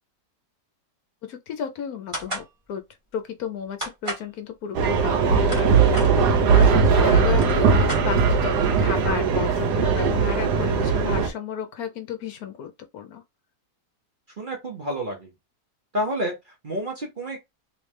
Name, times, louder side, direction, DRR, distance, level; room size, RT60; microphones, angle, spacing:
voice 1, 1.2-2.8 3.1-13.2, left 7 dB, 70° left, 1.0 m, -33 dB
sound 1, 2.1-2.5 3.8-4.3 5.2-6.1 6.9-7.0 7.3-8.5, right 1 dB, 20° right, 1.4 m, -33 dB
sound 2, 4.7-11.3, right 5 dB, 75° right, 1.4 m, -19 dB
voice 2, 14.4-15.3 15.9-17.4, equal, 40° right, 0.9 m, -29 dB
3.2 x 3.1 x 3.2 m
omnidirectional pair, 1.8 m